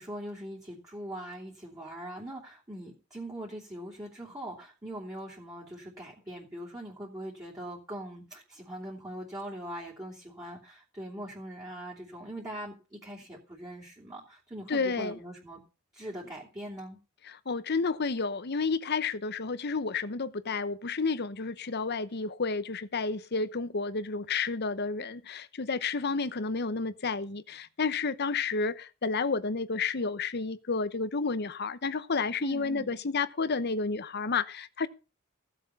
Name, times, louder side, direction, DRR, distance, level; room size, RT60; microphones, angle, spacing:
voice 1, 0.0-15.6 15.9-17.0 32.4-33.0, right 1 dB, 20° right, 3.1 m, -41 dB
voice 2, 14.7-15.2 17.3-34.9, left 4 dB, 50° left, 0.9 m, -31 dB
15.5 x 7.5 x 5.8 m
head